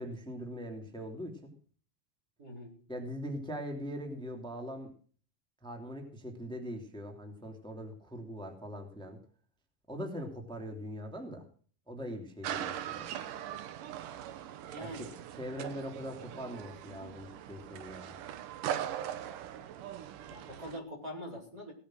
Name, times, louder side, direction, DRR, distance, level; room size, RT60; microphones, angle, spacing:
voice 1, 0.0-1.5 2.9-4.9 5.6-9.2 9.9-11.5 11.9-13.1 14.8-15.1 15.4-18.2, equal, ahead, 4 dB, 2.3 m, -41 dB
voice 2, 2.4-2.7 14.7-15.1 15.5-15.8 20.3-21.7, equal, 25° right, -3 dB, 5.1 m, -44 dB
sound 1, 12.4-20.8, right 10 dB, 75° right, 2.6 m, -40 dB
18.5 x 8.7 x 6.4 m, 0.44 s
omnidirectional pair, 3.9 m